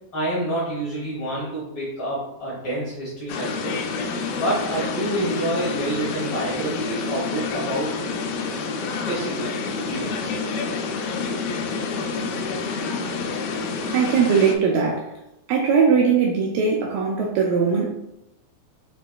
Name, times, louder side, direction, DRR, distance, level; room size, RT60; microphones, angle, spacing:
voice 1, 0.1-3.8 4.4-8.0 8.9-9.5 9.9-10.3, right 1 dB, 65° left, -8 dB, 1.4 m, -28 dB
sound 1, 3.3-14.5, left 4 dB, 80° left, 2.1 m, -28 dB
voice 2, 13.9-15.1 15.5-17.9, right 6 dB, 80° right, -2 dB, 2.0 m, -20 dB
6.8 x 3.2 x 2.3 m, 0.90 s
omnidirectional pair, 4.4 m